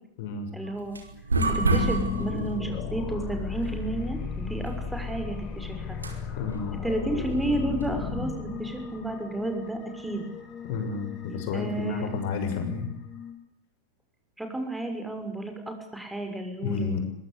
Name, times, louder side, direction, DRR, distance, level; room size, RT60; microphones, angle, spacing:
voice 1, 0.5-1.0 1.4-6.0 6.8-10.3 11.5-12.1 14.4-17.0, right 1 dB, 5° right, 5 dB, 6.2 m, -32 dB
sound 1, 0.6-8.2, right 2 dB, 75° right, 5.1 m, -31 dB
sound 2, 1.4-13.3, left 6 dB, 35° left, 5.6 m, -35 dB
voice 2, 6.4-6.7 10.6-12.9 16.6-17.0, left 5 dB, 50° left, 7 dB, 6.6 m, -31 dB
25.0 x 23.0 x 8.5 m, 0.75 s
figure-of-eight pair, 90°, 0 cm